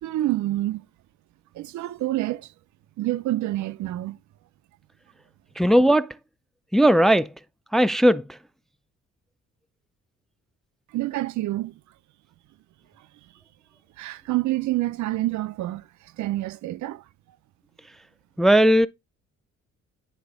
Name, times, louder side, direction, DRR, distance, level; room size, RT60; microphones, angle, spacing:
voice 1, 0.0-0.9 1.5-2.5 3.0-4.2 10.9-11.8 14.0-17.0, right 16 dB, 70° right, 0.5 m, -27 dB
voice 2, 5.6-6.1 6.7-7.3 7.7-8.2 18.4-18.9, right 1 dB, ahead, 0.4 m, -17 dB
9.9 x 3.4 x 4.8 m
cardioid pair, 90°, 30 cm